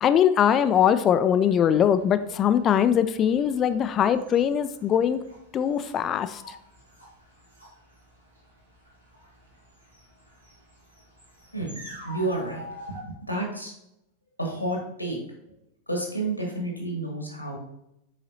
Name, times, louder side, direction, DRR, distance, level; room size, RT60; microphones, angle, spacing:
voice 1, 0.0-5.2 5.5-6.4, left 9 dB, 30° left, 11 dB, 0.3 m, -21 dB
sound 1, 1.4-13.0, equal, 85° right, 1.7 m, -48 dB
voice 2, 12.0-13.7 14.4-15.2 15.9-17.6, right 2 dB, 90° left, 0 dB, 1.6 m, -30 dB
7.3 x 4.8 x 2.8 m, 0.81 s
figure-of-eight pair, 90°, 0 cm